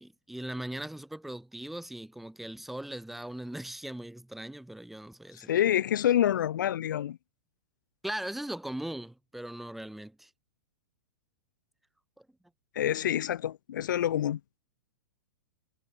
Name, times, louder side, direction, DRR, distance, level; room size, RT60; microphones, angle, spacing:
voice 1, 0.0-5.5 8.0-10.3 12.2-12.3, right 1 dB, ahead, 1.5 m, -39 dB
voice 2, 5.3-7.2 12.7-14.4, left 11 dB, 80° left, 0.7 m, -27 dB
supercardioid pair, 165°, 10 cm